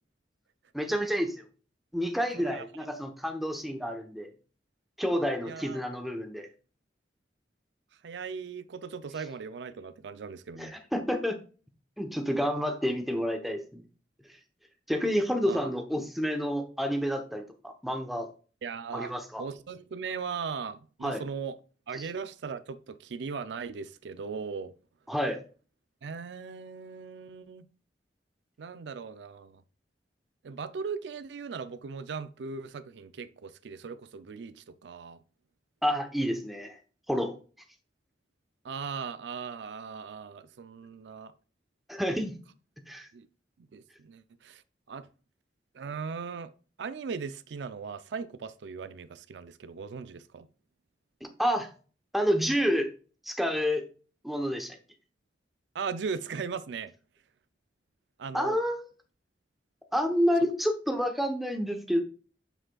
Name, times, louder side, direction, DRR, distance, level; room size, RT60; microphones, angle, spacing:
voice 1, 0.7-1.4 1.9-4.3 5.0-6.5 10.6-11.4 12.0-13.8 14.9-18.3 18.9-19.4 21.0-21.2 25.1-25.4 35.8-36.8 37.1-37.3 41.9-42.3 42.9-43.1 51.2-51.7 52.1-52.9 53.2-53.8 54.2-54.8 58.3-58.8 59.9-62.0, equal, ahead, 0.8 m, -29 dB
voice 2, 2.3-2.7 5.4-5.8 8.0-10.7 15.5-15.7 18.6-19.1 19.4-21.6 21.9-24.7 26.0-27.7 28.6-29.6 30.4-35.2 38.6-41.3 43.1-43.3 43.7-44.6 44.9-45.1 45.7-46.5 46.8-50.5 55.7-56.9 58.2-58.6, right 5 dB, 80° right, 0.4 m, -38 dB
8.7 x 4.9 x 2.3 m
head